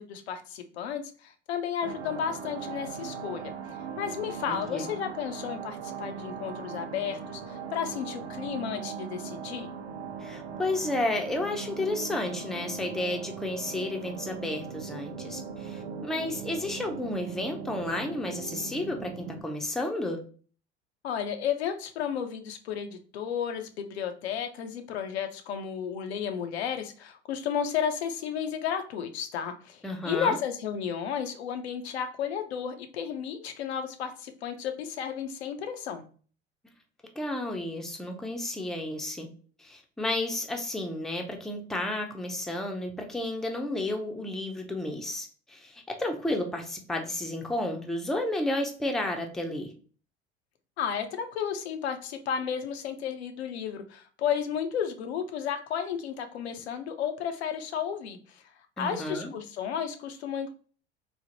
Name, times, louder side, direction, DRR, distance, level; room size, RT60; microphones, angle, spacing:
voice 1, 0.0-9.7 21.0-36.0 50.8-58.4 58.8-60.5, left 8 dB, 75° left, 6 dB, 0.5 m, -33 dB
sound 1, 1.8-19.4, right 6 dB, 85° right, 0.6 m, -39 dB
voice 2, 4.5-4.9 10.2-20.2 29.8-30.4 37.2-39.3 39.6-49.7 58.8-59.3, left 1 dB, ahead, 3 dB, 0.5 m, -32 dB
3.2 x 2.0 x 2.6 m, 0.41 s
hypercardioid pair, 70°, 32 cm